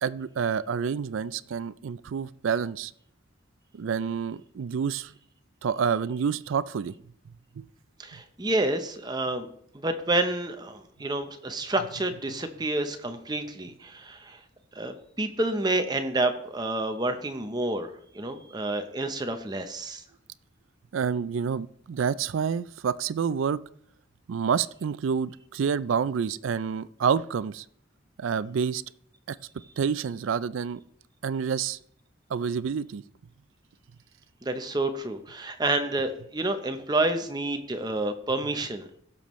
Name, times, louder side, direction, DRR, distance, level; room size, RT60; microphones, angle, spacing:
voice 1, 0.0-2.9 3.7-5.1 5.6-6.9 7.5-7.7 20.9-23.6 24.3-27.7 28.2-28.8 29.3-29.4 29.8-30.8 31.2-31.8 32.3-33.0, right 6 dB, 85° right, 18 dB, 0.4 m, -28 dB
voice 2, 8.0-9.5 9.7-14.4 14.8-20.0 34.4-39.0, right 2 dB, 20° right, 7 dB, 0.7 m, -29 dB
16.0 x 7.0 x 3.1 m, 0.67 s
head